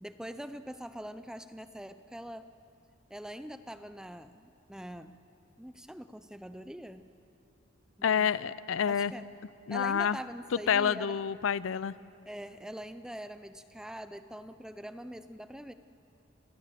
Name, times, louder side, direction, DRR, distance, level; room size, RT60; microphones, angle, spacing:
voice 1, 0.0-2.5 3.1-5.2 5.6-7.1 8.0-8.3 8.9-9.3 9.7-11.2 12.3-15.7, equal, 5° right, 11 dB, 0.5 m, -43 dB
voice 2, 8.0-9.1 9.7-10.2 10.7-11.9, left 7 dB, 90° left, 18 dB, 0.5 m, -28 dB
27.5 x 18.5 x 6.6 m, 2.7 s
head